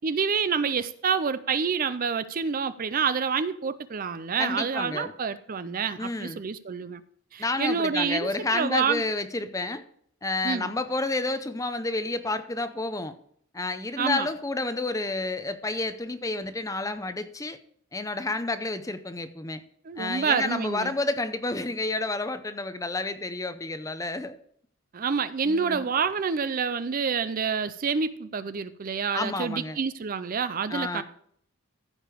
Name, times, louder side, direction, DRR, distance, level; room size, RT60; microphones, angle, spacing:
voice 1, 0.0-7.0 7.3-9.0 10.4-10.7 14.0-14.3 19.9-20.9 24.9-31.0, right 6 dB, 40° right, 13 dB, 0.4 m, -28 dB
voice 2, 4.4-5.1 6.0-6.4 7.4-9.8 10.2-13.1 13.5-17.6 17.9-19.6 20.0-24.4 25.4-25.9 29.1-29.8 30.7-31.0, left 2 dB, 15° left, 11 dB, 0.6 m, -30 dB
14.5 x 5.1 x 5.0 m, 0.65 s
head